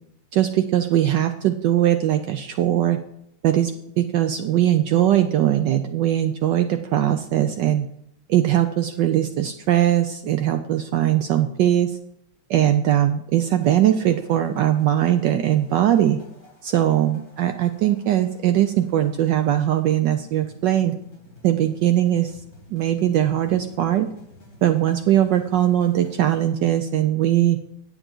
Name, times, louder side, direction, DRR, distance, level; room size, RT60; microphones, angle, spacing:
voice 1, 0.3-3.0 3.4-7.9 8.3-11.9 12.5-16.2 16.6-21.0 21.4-22.3 22.7-24.1 24.6-27.6, right 12 dB, 75° right, 8 dB, 1.0 m, -20 dB
sound 1, 13.3-26.5, left 1 dB, 40° left, 4.0 m, -51 dB
9.7 x 7.9 x 4.4 m, 0.74 s
omnidirectional pair, 2.4 m